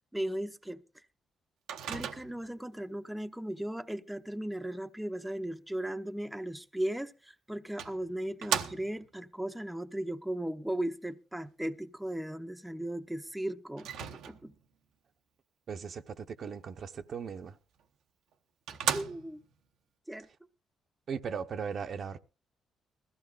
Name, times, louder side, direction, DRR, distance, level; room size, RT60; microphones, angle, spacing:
voice 1, 0.1-0.8 1.9-13.9 14.3-14.5 18.9-19.4 20.1-20.3, right 1 dB, 5° right, 0.7 m, -36 dB
Microwave oven, 1.7-2.6 6.9-7.0 7.8-9.2 13.8-14.7 17.8-17.9 18.3-18.4 18.7-19.5, right 8 dB, 85° right, 1.0 m, -36 dB
voice 2, 15.7-17.5 21.1-22.2, right 6 dB, 55° right, 0.8 m, -38 dB
21.0 x 15.0 x 2.5 m
cardioid pair, 90°, 0 cm